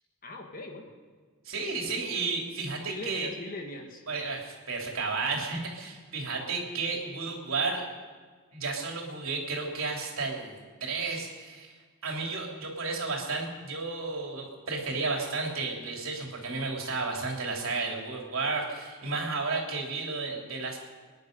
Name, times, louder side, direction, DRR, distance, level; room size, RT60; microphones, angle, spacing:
voice 1, 0.2-0.8 2.1-2.3 2.9-4.1, left 2 dB, 40° left, 3 dB, 1.7 m, -40 dB
voice 2, 1.4-3.3 4.1-7.8 8.5-11.8 12.0-20.8, right 3 dB, 65° right, 0 dB, 3.4 m, -32 dB
25.0 x 10.5 x 5.4 m, 1.5 s
head